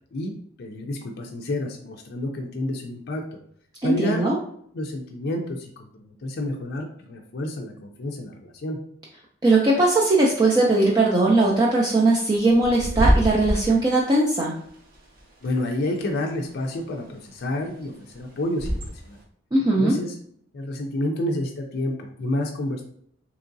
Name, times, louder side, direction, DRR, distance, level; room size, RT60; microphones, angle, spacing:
voice 1, 0.6-3.2 3.8-4.3 4.7-8.8 15.4-18.8 19.1-19.2 19.8-20.1 20.5-22.8, left 1 dB, 50° left, 1 dB, 0.4 m, -29 dB
voice 2, 3.8-4.4 9.4-14.5 19.5-19.9, right 2 dB, 20° right, -3 dB, 0.4 m, -19 dB
Bird / Wind, 10.5-19.2, equal, 45° right, 0.7 m, -29 dB
3.6 x 3.0 x 2.6 m, 0.65 s
head